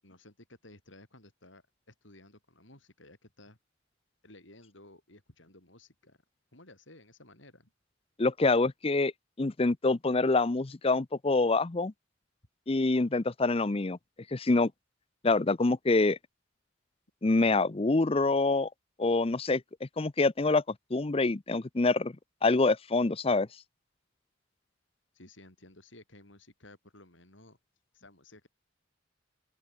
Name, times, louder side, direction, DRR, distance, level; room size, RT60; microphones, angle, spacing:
voice 1, 0.0-3.6 4.2-6.2 6.5-7.7 25.1-27.6 27.9-28.5, left 2 dB, 70° left, 7.8 m, -55 dB
voice 2, 8.2-9.1 9.4-11.9 12.7-14.0 14.3-14.7 15.2-16.2 17.2-18.7 19.0-20.6 20.9-22.1 22.4-23.5, left 3 dB, 30° left, 0.6 m, -26 dB
open air
head